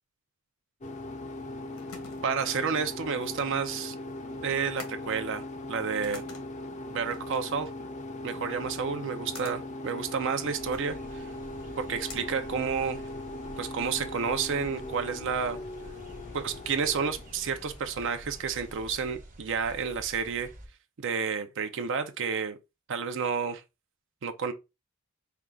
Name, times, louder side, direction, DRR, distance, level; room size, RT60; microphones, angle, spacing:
sound 1, 0.8-19.1, left 2 dB, 35° left, 0.5 m, -40 dB
sound 2, 1.4-13.2, left 4 dB, 85° left, 1.2 m, -51 dB
voice 1, 2.2-3.9 4.4-5.4 5.7-6.2 6.9-7.7 8.2-11.2 11.8-13.0 13.6-15.6 16.3-20.5 21.0-22.6 22.9-23.6 24.2-24.5, right 6 dB, 65° right, 0.5 m, -30 dB
sound 3, 10.5-20.7, right 1 dB, 40° right, 0.9 m, -49 dB
4.5 x 2.3 x 3.7 m
head